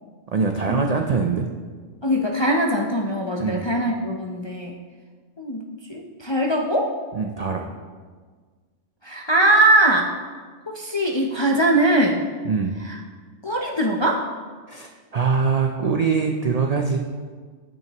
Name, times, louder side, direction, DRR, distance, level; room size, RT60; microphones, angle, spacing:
voice 1, 0.3-1.5 3.4-3.6 7.1-7.7 12.4-12.7 14.7-17.0, right 5 dB, 65° right, 3 dB, 0.4 m, -23 dB
voice 2, 2.0-4.8 5.4-6.9 9.0-10.1 10.7-12.2 12.8-13.0 13.4-14.3, right 1 dB, 35° left, -1 dB, 0.4 m, -21 dB
9.2 x 8.9 x 2.9 m, 1.5 s
omnidirectional pair, 1.3 m